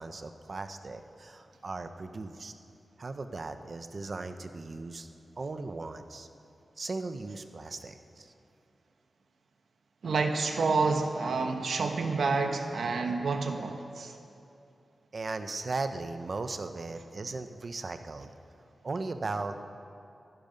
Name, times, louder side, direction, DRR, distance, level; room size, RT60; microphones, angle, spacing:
voice 1, 0.0-2.5 3.0-5.1 5.4-6.3 6.8-8.3 15.1-18.3 18.8-19.6, right 3 dB, 40° right, 8 dB, 0.8 m, -37 dB
voice 2, 10.0-14.1, right 4 dB, 80° right, 5 dB, 1.2 m, -28 dB
23.5 x 11.0 x 5.2 m, 2.6 s
wide cardioid pair, 175°, 0 cm